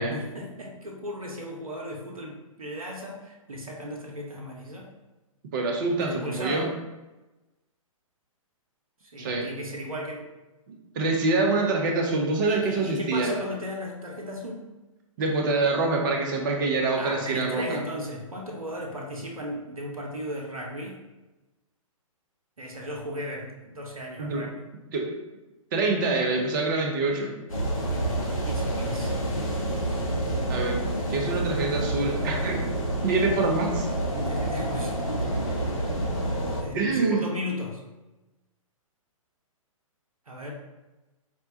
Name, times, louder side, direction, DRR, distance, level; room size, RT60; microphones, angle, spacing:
voice 1, 0.0-4.9 6.0-6.7 9.0-10.3 12.5-14.6 16.9-21.0 22.6-24.6 27.8-29.1 34.1-34.9 36.6-37.8 40.3-40.5, equal, 80° right, -1 dB, 0.8 m, -36 dB
voice 2, 5.5-6.7 9.2-9.5 10.7-13.3 15.2-17.8 24.2-24.5 24.9-25.1 25.7-27.4 30.5-30.8 31.1-32.6 33.0-33.9 36.7-37.2, right 3 dB, 35° right, 1 dB, 0.7 m, -25 dB
sound 1, 27.5-36.6, right 1 dB, 75° left, 1.3 m, -28 dB
5.3 x 2.2 x 2.7 m, 1.1 s
figure-of-eight pair, 120°, 18 cm